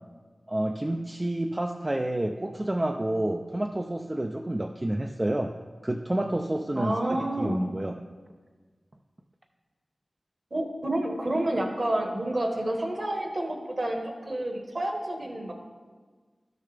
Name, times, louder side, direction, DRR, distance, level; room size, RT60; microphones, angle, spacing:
voice 1, 0.5-5.5 5.8-8.0, right 1 dB, 25° right, 3 dB, 0.4 m, -29 dB
voice 2, 6.8-7.7 10.5-15.5, right 1 dB, 50° right, 3 dB, 1.4 m, -29 dB
12.0 x 6.6 x 3.4 m, 1.4 s
wide cardioid pair, 50°, 0 cm